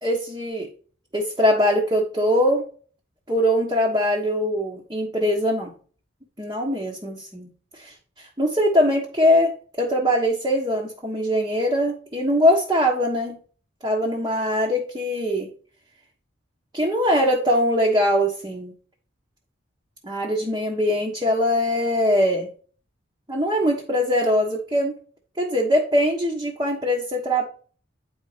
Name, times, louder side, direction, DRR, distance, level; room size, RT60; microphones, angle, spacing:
voice 1, 0.0-0.7 1.1-2.6 3.3-5.7 6.4-7.5 7.8-13.4 13.8-15.5 16.7-18.7 20.0-22.5 23.3-24.9 25.4-27.4, equal, 20° right, -2 dB, 1.3 m, -22 dB
9.9 x 4.3 x 5.0 m, 0.41 s
head